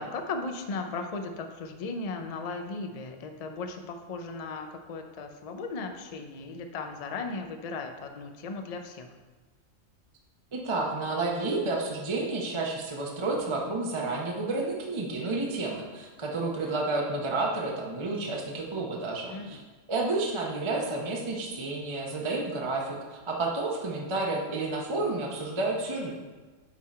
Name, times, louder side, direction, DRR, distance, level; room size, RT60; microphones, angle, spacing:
voice 1, 0.0-9.1 19.3-19.6, left 3 dB, 80° left, 6 dB, 0.3 m, -36 dB
voice 2, 10.5-19.6 19.9-26.1, right 2 dB, 25° right, -1 dB, 0.8 m, -30 dB
9.7 x 3.8 x 4.2 m, 1.3 s
omnidirectional pair, 1.5 m